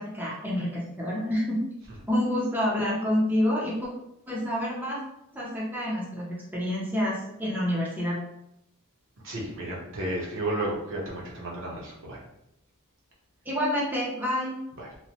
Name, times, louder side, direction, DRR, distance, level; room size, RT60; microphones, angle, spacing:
voice 1, 0.0-1.6 2.1-3.9 4.3-5.0 5.3-8.2 13.5-14.6, left 1 dB, 10° right, -6 dB, 0.6 m, -28 dB
voice 2, 9.2-12.2 14.8-14.9, right 1 dB, 60° right, -3 dB, 0.8 m, -32 dB
3.0 x 2.1 x 2.8 m, 0.82 s
head